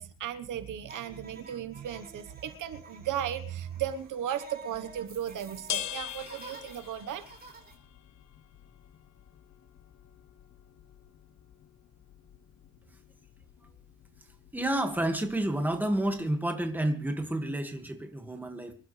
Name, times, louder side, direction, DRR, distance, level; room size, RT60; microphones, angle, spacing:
voice 1, 0.0-7.2, right 10 dB, 70° right, 11 dB, 1.2 m, -36 dB
sound 1, 0.8-7.7, right 4 dB, 30° right, 4.3 m, -50 dB
sound 2, 4.7-16.2, left 12 dB, 55° left, 1.2 m, -45 dB
voice 2, 14.5-18.7, right 1 dB, 5° right, 5 dB, 1.9 m, -30 dB
25.5 x 12.0 x 3.3 m, 0.37 s
cardioid pair, 155°, 32 cm